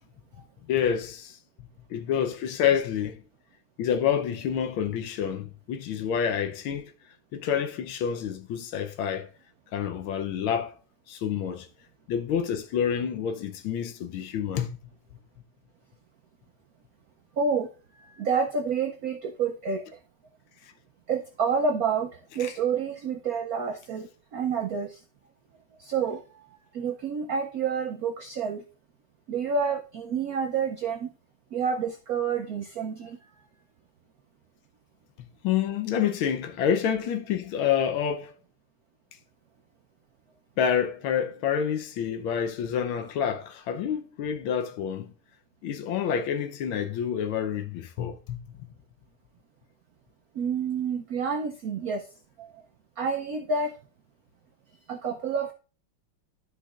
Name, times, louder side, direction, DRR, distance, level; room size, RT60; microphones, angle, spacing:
voice 1, 0.7-1.4 1.9-3.2 3.8-6.9 7.3-9.3 9.7-10.8 11.1-11.7 12.1-14.7 22.4-22.5 35.4-38.3 40.6-45.1 45.6-48.4, left 8 dB, 75° left, 1.5 m, -28 dB
voice 2, 17.4-17.7 18.0-19.9 21.1-25.0 25.8-26.5 26.7-28.6 29.3-31.1 31.5-33.2 50.3-52.1 52.4-52.5 53.0-53.7 54.9-55.5, right 5 dB, 75° right, 0.8 m, -29 dB
12.5 x 5.1 x 2.4 m
omnidirectional pair, 2.4 m